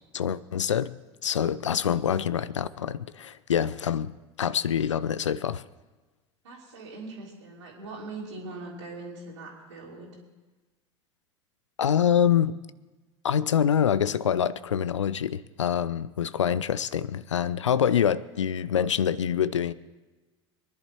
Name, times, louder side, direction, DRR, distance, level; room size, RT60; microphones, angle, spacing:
voice 1, 0.1-0.9 1.2-5.6 11.8-12.6 13.2-19.7, left 8 dB, 80° left, 0.4 m, -25 dB
voice 2, 6.4-10.1, right 3 dB, 75° right, 3.2 m, -41 dB
23.0 x 11.0 x 4.4 m
figure-of-eight pair, 80°, 15 cm